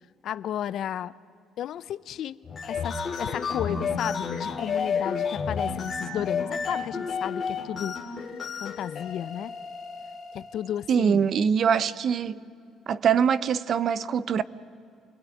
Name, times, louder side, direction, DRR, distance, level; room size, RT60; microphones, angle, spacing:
voice 1, 0.2-1.1 1.6-2.4 2.7-8.0 8.6-9.5 10.3-11.3, left 10 dB, 60° left, 0.7 m, -33 dB
sound 1, 2.4-10.7, left 5 dB, 40° left, 2.6 m, -31 dB
voice 2, 10.9-12.4 12.9-14.4, right 7 dB, 50° right, 0.8 m, -23 dB
29.0 x 20.5 x 9.4 m
cardioid pair, 130°, 0 cm